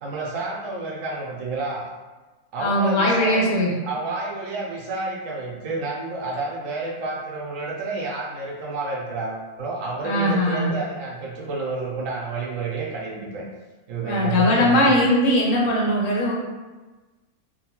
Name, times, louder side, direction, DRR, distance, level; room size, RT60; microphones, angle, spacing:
voice 1, 0.0-1.9 2.5-3.5 3.8-13.4 13.9-15.0, right 3 dB, 70° right, -3 dB, 0.9 m, -29 dB
voice 2, 2.6-3.7 10.0-10.7 14.0-16.3, left 1 dB, 70° left, -2 dB, 0.8 m, -20 dB
2.9 x 2.2 x 2.9 m, 1.2 s
omnidirectional pair, 1.5 m